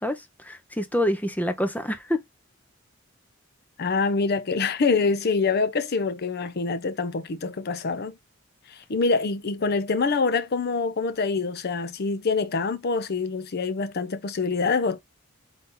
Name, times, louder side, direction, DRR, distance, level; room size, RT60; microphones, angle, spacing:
voice 1, 0.0-2.2, left 1 dB, 10° left, 0.6 m, -27 dB
voice 2, 3.8-8.2 8.7-15.0, left 4 dB, 50° left, 0.5 m, -25 dB
4.1 x 2.8 x 3.6 m
head